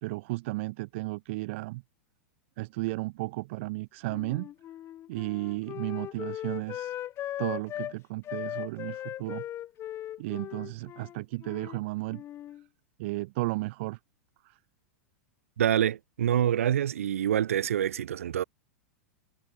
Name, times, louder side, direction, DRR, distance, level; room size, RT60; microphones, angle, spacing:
voice 1, 0.0-1.8 2.6-4.5 5.1-7.0 7.4-9.4 10.2-12.2 13.0-14.0 14.4-14.6, right 21 dB, 60° right, 3.7 m, -34 dB
Wind instrument woodwind instrument, 4.1-7.9 8.2-11.8 12.1-12.6, left 12 dB, 35° left, 6.5 m, -38 dB
voice 2, 15.6-18.4, right 10 dB, 75° right, 6.4 m, -26 dB
hypercardioid pair, 105°, 7 cm